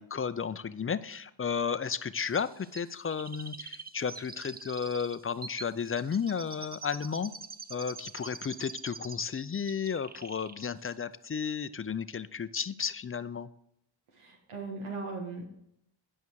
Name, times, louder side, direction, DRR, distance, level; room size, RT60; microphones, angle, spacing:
voice 1, 0.0-7.3 7.7-13.5, left 6 dB, 30° left, 14 dB, 0.5 m, -33 dB
Chirp tweet, 2.3-9.4 9.7-10.6 10.9-11.0, right 4 dB, 20° right, 0.5 m, -45 dB
voice 2, 14.1-15.4, right 3 dB, 85° right, 1 dB, 1.6 m, -38 dB
10.5 x 5.5 x 4.7 m, 0.75 s
cardioid pair, 50°, 49 cm